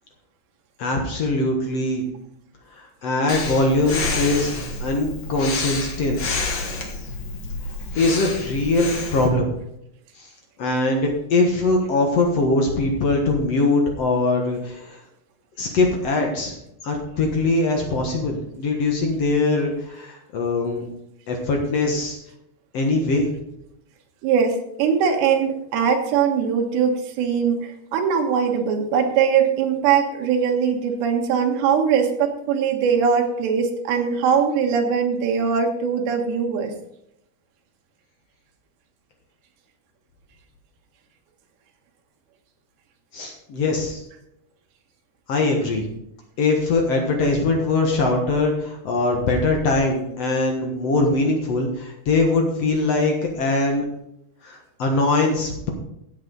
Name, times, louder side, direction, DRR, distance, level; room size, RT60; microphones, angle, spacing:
voice 1, 0.8-2.0 2.7-4.5 4.8-6.4 8.0-9.5 10.2-10.3 10.6-15.0 15.6-16.5 16.8-20.8 21.3-22.2 22.7-23.3 43.1-44.0 45.3-45.9 46.4-53.8 54.4-55.7, left 2 dB, 60° left, 1 dB, 1.7 m, -22 dB
Breathing, 3.3-9.3, left 3 dB, 80° left, 1.0 m, -29 dB
voice 2, 24.2-36.7, right 7 dB, 85° right, 2 dB, 3.6 m, -21 dB
14.5 x 8.3 x 4.0 m, 0.80 s
omnidirectional pair, 4.8 m